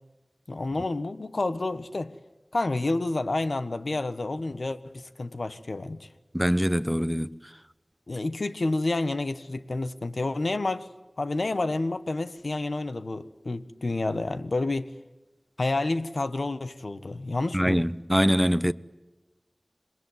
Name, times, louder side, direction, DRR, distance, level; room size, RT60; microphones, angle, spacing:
voice 1, 0.5-2.1 2.5-6.1 8.1-10.9 11.2-14.9 15.6-17.8, left 2 dB, 80° left, 1.4 m, -29 dB
voice 2, 6.3-7.3 17.5-18.7, equal, ahead, 1.0 m, -23 dB
27.0 x 21.0 x 9.5 m
wide cardioid pair, 45°, 0 cm